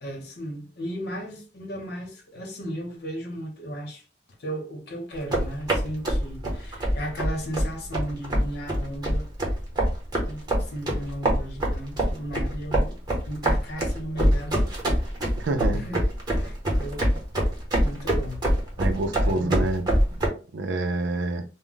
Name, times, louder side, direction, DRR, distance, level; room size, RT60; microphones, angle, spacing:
voice 1, 0.0-4.0 4.4-9.3 10.2-13.0 13.3-14.6 14.8-15.1 15.7-16.0 16.3-17.2 17.8-18.4 19.2-19.7, equal, 65° left, 0.9 m, -35 dB
sound 1, 5.1-20.3, equal, 25° right, 0.9 m, -24 dB
voice 2, 15.4-15.9 18.8-19.9 20.5-21.4, right 2 dB, 90° right, 0.5 m, -27 dB
2.2 x 2.1 x 3.8 m
head